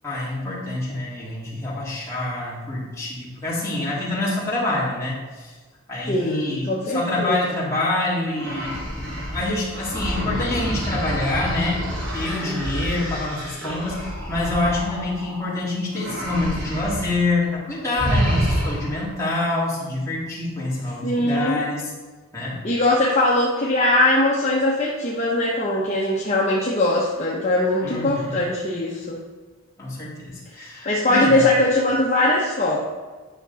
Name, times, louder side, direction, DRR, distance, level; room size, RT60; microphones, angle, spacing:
voice 1, 0.0-5.5 5.9-8.8 9.3-11.8 12.1-21.9 22.3-22.6 27.8-28.5 29.8-31.5, left 2 dB, 15° left, -8 dB, 2.5 m, -26 dB
voice 2, 6.1-7.5 21.0-21.6 22.6-29.2 30.8-32.8, left 1 dB, 30° left, -5 dB, 1.1 m, -21 dB
sound 1, 8.3-15.5 15.9-17.2 17.4-17.6 18.0-19.1, equal, 55° right, 2.4 m, -28 dB
10.0 x 6.1 x 4.1 m, 1.3 s
head